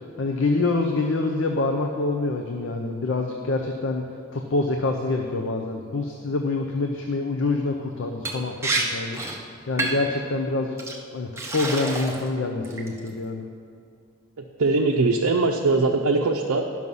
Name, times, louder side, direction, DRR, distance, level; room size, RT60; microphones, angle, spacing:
voice 1, 0.2-4.0 4.3-9.2 9.7-10.8 11.1-13.5, left 3 dB, 55° left, 3 dB, 0.6 m, -26 dB
Liquid, 8.2-8.4 8.6-8.8 9.1-9.4 9.8-10.1 10.8-10.9 11.4-12.3 12.6-13.1, right 2 dB, 10° right, 0.8 m, -28 dB
voice 2, 14.6-16.7, right 3 dB, 80° right, 1 dB, 0.6 m, -21 dB
11.0 x 6.2 x 5.4 m, 2.3 s
head